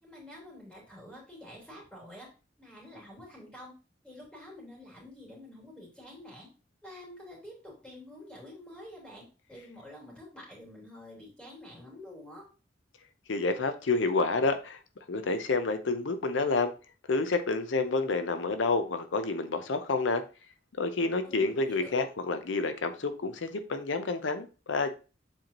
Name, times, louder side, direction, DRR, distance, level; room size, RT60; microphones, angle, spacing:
voice 1, 0.0-2.3 2.6-3.7 4.0-6.5 6.8-9.2 9.5-12.5 21.2-22.0, left 1 dB, 5° left, -5 dB, 3.3 m, -48 dB
voice 2, 13.3-14.8 15.1-16.7 17.1-20.2 20.8-24.9, left 3 dB, 85° left, 9 dB, 0.6 m, -29 dB
7.6 x 4.5 x 2.9 m, 0.33 s
head